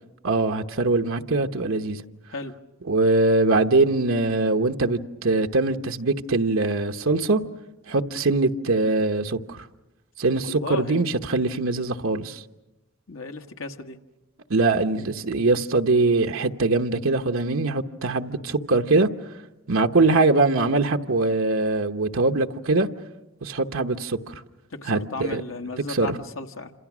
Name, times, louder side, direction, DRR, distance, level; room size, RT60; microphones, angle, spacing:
voice 1, 0.2-2.0 2.9-7.4 7.9-9.7 10.2-12.4 14.5-19.1 19.7-22.9 23.4-24.4 24.9-25.4 25.9-26.2, right 3 dB, 75° right, 1.0 m, -22 dB
voice 2, 10.4-11.0 13.1-14.0 24.7-26.7, left 3 dB, 75° left, 1.5 m, -34 dB
27.5 x 27.0 x 6.2 m
head